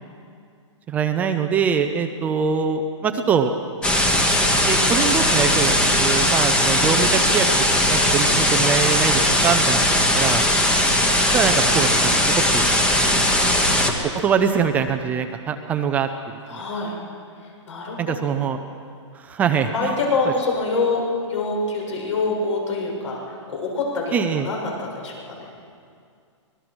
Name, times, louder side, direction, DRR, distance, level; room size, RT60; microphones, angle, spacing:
voice 1, 0.9-3.5 4.7-7.5 7.9-10.4 11.3-12.7 14.1-16.6 18.0-18.6 19.1-19.9 24.1-24.5, right 6 dB, 10° right, 6 dB, 0.5 m, -23 dB
sound 1, 3.8-13.9, left 1 dB, 5° left, 1.1 m, -19 dB
voice 2, 13.0-13.5 16.5-17.0 17.4-18.1 19.7-25.5, left 3 dB, 70° left, -1 dB, 7.3 m, -26 dB
24.5 x 19.5 x 6.2 m, 2.2 s
hypercardioid pair, 165°, 16 cm